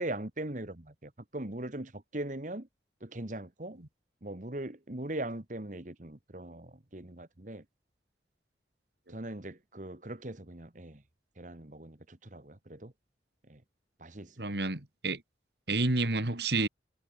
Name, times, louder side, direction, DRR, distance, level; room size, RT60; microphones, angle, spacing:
voice 1, 0.0-2.7 3.0-3.8 4.2-7.6 9.1-11.0 11.4-12.9 13.5-13.6 14.0-14.4, right 1 dB, 45° right, 1.7 m, -40 dB
voice 2, 14.4-15.2 15.7-16.7, right 2 dB, 70° right, 2.3 m, -29 dB
head